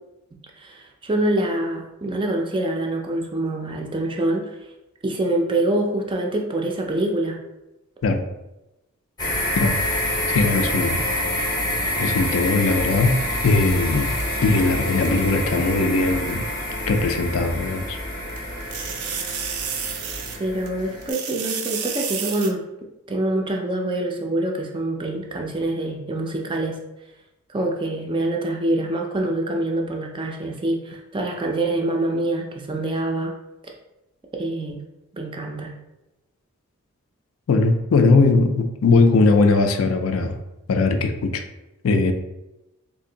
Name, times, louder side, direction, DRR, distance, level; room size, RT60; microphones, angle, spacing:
voice 1, 0.6-4.6 5.0-7.4 20.4-22.6 23.1-26.8 27.5-33.3 34.3-34.8 35.1-35.7, right 1 dB, 20° right, 1 dB, 0.4 m, -25 dB
sound 1, 9.2-21.1, left 1 dB, 20° left, 0.7 m, -27 dB
voice 2, 9.6-11.0 12.0-13.1 13.4-14.1 14.4-16.5 16.9-18.0 31.9-32.0 37.5-40.4 40.7-41.4 41.8-42.1, left 3 dB, 65° left, 6 dB, 0.4 m, -20 dB
sound 2, 13.5-15.2 16.3-16.4 18.3-20.7 21.0-22.5, right 7 dB, 80° right, 0.5 m, -31 dB
2.7 x 2.5 x 3.8 m, 0.95 s
head